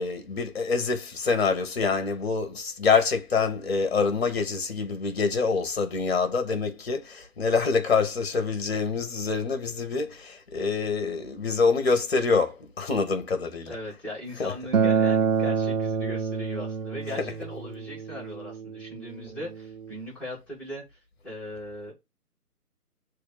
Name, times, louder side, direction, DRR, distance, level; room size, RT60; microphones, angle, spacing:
voice 1, 0.0-13.8 14.4-14.5 17.2-17.3, left 4 dB, 40° left, 1.5 m, -26 dB
voice 2, 13.6-21.9, left 1 dB, 5° left, 2.7 m, -39 dB
Acoustic guitar, 14.7-19.9, right 6 dB, 60° right, 0.6 m, -27 dB
6.7 x 3.3 x 5.7 m
figure-of-eight pair, 140°, 46 cm